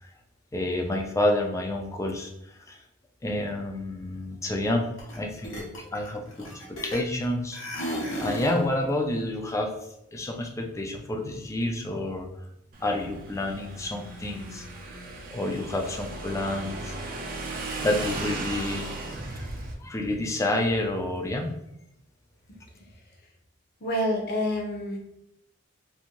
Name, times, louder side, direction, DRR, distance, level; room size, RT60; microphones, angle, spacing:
voice 1, 0.5-2.8 3.2-4.8 5.2-7.6 7.8-9.7 10.1-12.3 12.8-14.6 15.3-17.0 17.8-18.9 19.3-19.5 19.8-21.5, left 1 dB, 15° left, 2 dB, 0.3 m, -29 dB
sound 1, 5.0-5.2 5.4-7.2 7.5-8.6, equal, 80° left, 0.8 m, -34 dB
Motorcycle / Engine, 12.7-19.7, right 2 dB, 45° right, 0.5 m, -36 dB
voice 2, 23.8-25.0, equal, 50° left, 1 dB, 0.6 m, -27 dB
2.6 x 2.4 x 2.9 m, 0.81 s
head